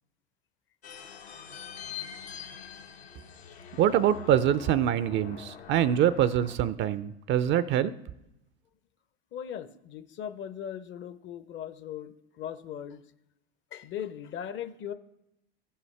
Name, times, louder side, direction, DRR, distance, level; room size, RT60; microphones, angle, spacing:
sound 1, 0.8-6.6, left 7 dB, 85° left, 1.2 m, -43 dB
voice 1, 3.8-7.9, right 10 dB, 35° right, 16 dB, 0.4 m, -24 dB
voice 2, 9.3-13.0 13.7-14.9, left 9 dB, 40° left, 13 dB, 0.6 m, -39 dB
15.5 x 5.6 x 3.2 m, 0.85 s
hypercardioid pair, 80°, 31 cm